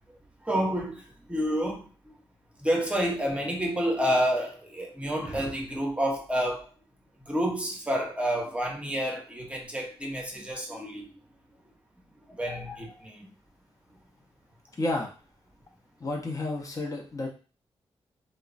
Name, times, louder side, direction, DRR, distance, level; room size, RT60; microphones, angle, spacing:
voice 1, 0.4-1.9 2.6-6.6 7.3-11.1 12.3-13.3, equal, 10° right, 1 dB, 0.7 m, -29 dB
voice 2, 14.8-15.1 16.0-17.3, left 2 dB, 30° left, 0 dB, 0.7 m, -31 dB
2.9 x 2.1 x 2.5 m, 0.36 s
cardioid pair, 65°, 11 cm